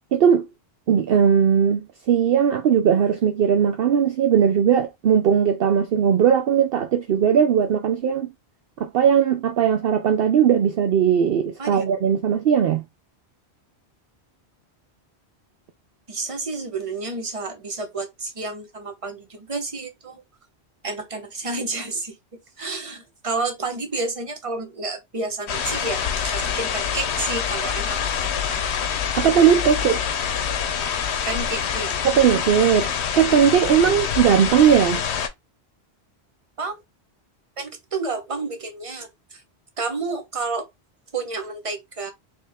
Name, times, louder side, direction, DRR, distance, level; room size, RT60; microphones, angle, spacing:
voice 1, 0.1-0.5 0.9-8.3 8.8-12.8 29.1-30.0 32.0-35.0, right 8 dB, 65° right, 0.8 m, -18 dB
voice 2, 16.1-20.2 20.8-28.6 31.3-32.0 36.6-36.8 37.6-39.4 39.8-40.7 41.1-42.1, right 3 dB, 30° right, 1.1 m, -30 dB
sound 1, 25.5-35.3, left 7 dB, 80° left, 1.0 m, -26 dB
4.3 x 3.4 x 3.5 m
omnidirectional pair, 1.1 m